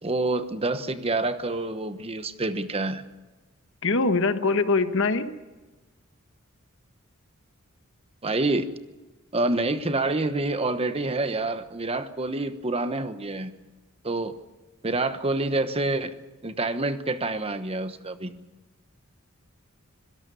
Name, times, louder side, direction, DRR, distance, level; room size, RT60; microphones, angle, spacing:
voice 1, 0.0-3.0 8.2-8.7 9.3-13.5 14.0-14.3 14.8-16.1 16.4-18.3, right 2 dB, 30° right, 10 dB, 1.1 m, -27 dB
voice 2, 3.8-5.3, left 3 dB, 65° left, 9 dB, 1.4 m, -23 dB
25.5 x 17.5 x 6.9 m, 1.2 s
head